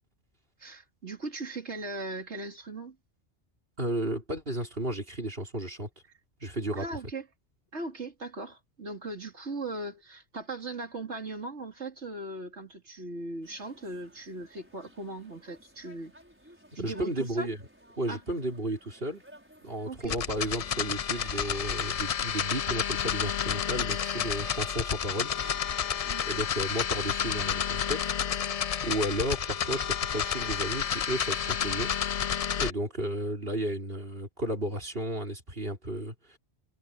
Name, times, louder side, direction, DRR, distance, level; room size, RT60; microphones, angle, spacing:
voice 1, 0.6-3.0 6.7-7.3 7.7-16.1 16.7-17.5 18.1-18.2 19.8-20.2 26.0-26.4, right 2 dB, 75° right, 3.4 m, -39 dB
voice 2, 3.8-5.9 6.4-6.8 16.7-17.6 18.0-19.2 19.6-25.3 26.2-28.1 28.8-31.9 32.6-36.4, right 1 dB, 55° right, 4.9 m, -33 dB
sound 1, 13.4-26.5, right 1 dB, 10° right, 5.9 m, -55 dB
sound 2, 20.0-32.7, left 8 dB, 55° left, 0.4 m, -30 dB
omnidirectional pair, 1.2 m